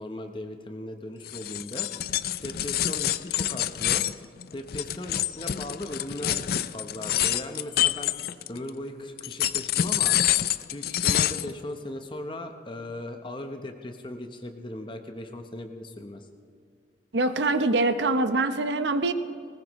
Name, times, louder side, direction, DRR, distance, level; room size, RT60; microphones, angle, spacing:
voice 1, 0.0-1.9 2.4-4.0 4.5-8.1 8.5-10.3 10.7-16.3, left 1 dB, 25° left, 5 dB, 0.9 m, -38 dB
sound 1, 1.2-8.7 9.2-11.5, left 12 dB, 55° left, 0.4 m, -27 dB
voice 2, 17.1-19.1, right 2 dB, 75° right, 10 dB, 0.9 m, -24 dB
20.0 x 20.0 x 3.1 m, 2.2 s
head